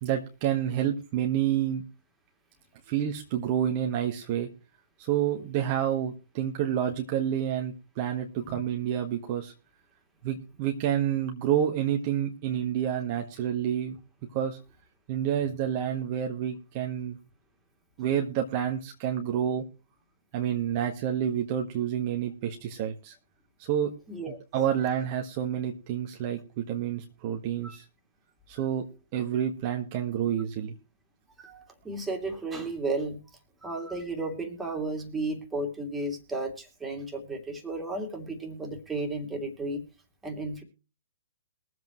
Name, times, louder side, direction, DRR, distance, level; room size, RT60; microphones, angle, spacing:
voice 1, 0.0-1.8 2.9-4.5 5.0-9.5 10.2-14.0 14.3-14.6 15.1-17.2 18.0-19.6 20.3-23.1 23.6-23.9 24.3-27.8 28.5-28.8 29.1-30.7, right 10 dB, 40° right, 3 dB, 1.6 m, -29 dB
voice 2, 24.1-24.4 27.6-27.8 31.4-33.2 33.6-39.8 40.2-40.6, right 2 dB, 10° right, 1 dB, 2.9 m, -33 dB
22.0 x 7.9 x 3.2 m, 0.32 s
figure-of-eight pair, 125°, 0 cm